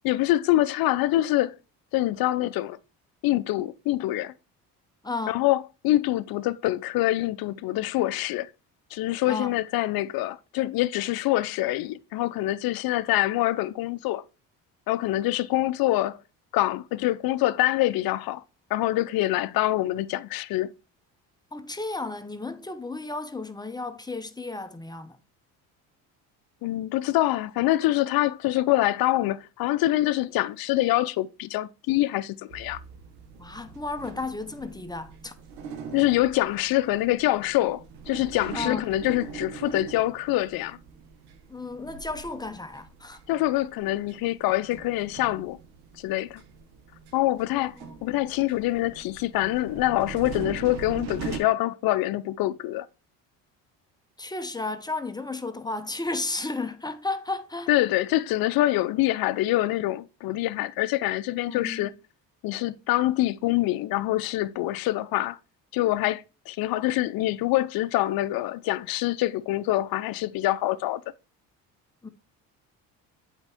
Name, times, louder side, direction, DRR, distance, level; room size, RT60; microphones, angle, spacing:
voice 1, 0.0-1.5 1.9-2.8 3.2-4.3 5.3-8.5 8.9-14.2 14.9-16.2 16.5-18.4 18.7-20.7 26.6-32.8 35.9-40.8 43.3-45.6 46.0-46.4 47.1-47.8 48.0-52.9 57.7-61.9 62.4-65.4 65.7-71.0, left 16 dB, 65° left, 0.6 m, -25 dB
voice 2, 5.0-5.5 9.3-9.5 21.5-25.2 33.4-35.3 38.5-39.0 41.5-43.2 47.5-48.0 54.2-57.7 61.5-61.9 72.0-72.1, left 3 dB, 10° left, 0.8 m, -33 dB
sound 1, 32.5-51.4, right 6 dB, 75° right, 1.3 m, -42 dB
7.9 x 4.5 x 3.5 m
supercardioid pair, 80°, 39 cm